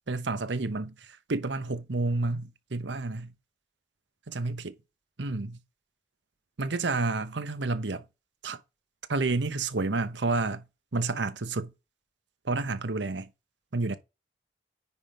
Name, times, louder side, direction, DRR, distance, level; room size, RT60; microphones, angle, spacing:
voice 1, 0.1-3.3 4.3-4.7 5.2-5.6 6.6-8.0 8.4-8.6 9.1-10.6 10.9-11.7 12.4-13.3 13.7-14.0, right 3 dB, 85° right, 0.9 m, -30 dB
9.8 x 3.7 x 5.1 m
head